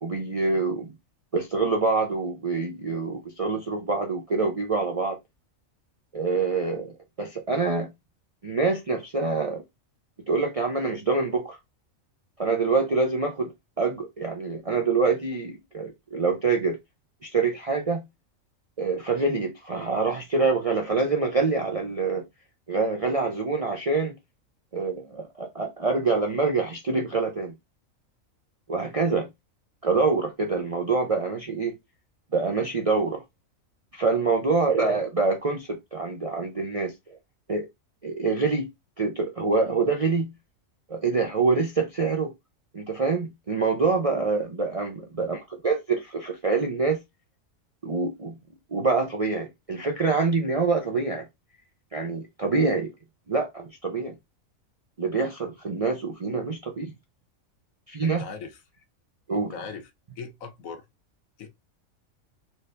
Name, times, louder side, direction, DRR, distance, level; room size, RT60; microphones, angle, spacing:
voice 1, 0.0-0.9 1.3-5.2 6.1-7.9 8.4-9.6 10.3-11.6 12.4-16.8 17.2-18.1 18.8-22.2 22.7-24.2 24.7-27.5 28.7-29.3 29.8-31.8 32.3-33.2 33.9-37.2 37.5-37.7 38.0-38.7 39.0-40.3 40.9-42.3 42.7-47.0 47.8-48.4 48.7-51.3 51.9-52.9 53.3-54.2 55.0-56.9 57.9-58.2 59.3-59.5, right 4 dB, 45° right, 0.4 m, -26 dB
voice 2, 58.0-58.6 59.3-59.9 60.2-60.9 61.4-61.5, left 5 dB, 80° left, 1.2 m, -39 dB
4.3 x 3.3 x 2.5 m
omnidirectional pair, 1.4 m